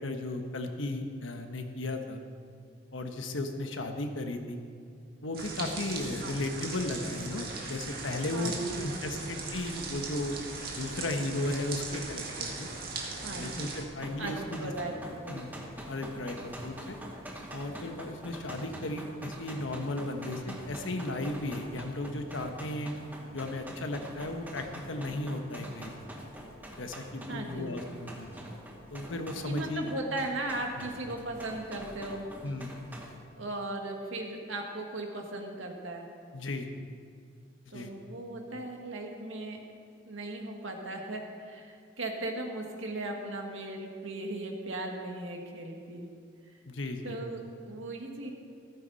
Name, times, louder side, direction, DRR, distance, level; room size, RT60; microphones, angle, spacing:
voice 1, 0.0-2.2 2.9-4.6 5.2-10.4 10.7-12.7 13.4-14.7 15.3-15.5 15.9-17.0 17.5-22.9 23.3-25.9 26.8-28.3 28.9-29.9 30.8-30.9 32.4-32.7 36.3-36.7 37.6-37.9 46.7-47.2, left 1 dB, 80° left, 5 dB, 1.2 m, -35 dB
sound 1, 5.3-13.8, right 3 dB, 50° right, 2.0 m, -39 dB
voice 2, 8.3-9.3 13.2-13.7 14.2-14.9 15.2-15.4 27.3-27.7 29.4-32.3 33.3-36.1 37.7-39.6 40.0-46.1 47.0-48.3, right 2 dB, 85° right, 2 dB, 1.9 m, -37 dB
sound 2, 14.0-33.2, equal, 10° right, 1.2 m, -45 dB
14.5 x 13.5 x 4.1 m, 2.3 s
head